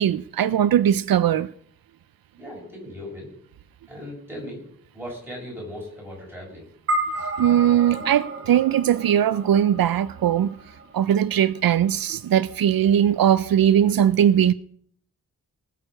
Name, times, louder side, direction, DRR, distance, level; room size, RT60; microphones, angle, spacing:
voice 1, 0.0-1.5 7.4-10.5 10.9-14.5, right 10 dB, 75° right, 0.5 m, -20 dB
voice 2, 2.4-3.3 3.9-4.6 4.9-6.7, left 1 dB, 5° right, 6.7 m, -37 dB
sound 1, 6.9-11.4, right 1 dB, 40° right, 2.1 m, -32 dB
19.5 x 6.7 x 6.3 m
wide cardioid pair, 175°, 35 cm